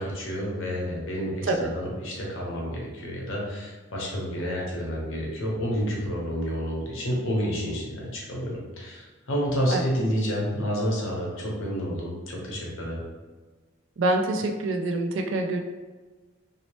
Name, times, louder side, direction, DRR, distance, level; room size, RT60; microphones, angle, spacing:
voice 1, 0.0-13.0, equal, 80° left, -3 dB, 0.8 m, -29 dB
voice 2, 14.0-15.6, right 2 dB, 70° right, 4 dB, 0.4 m, -25 dB
2.7 x 2.0 x 3.0 m, 1.3 s
head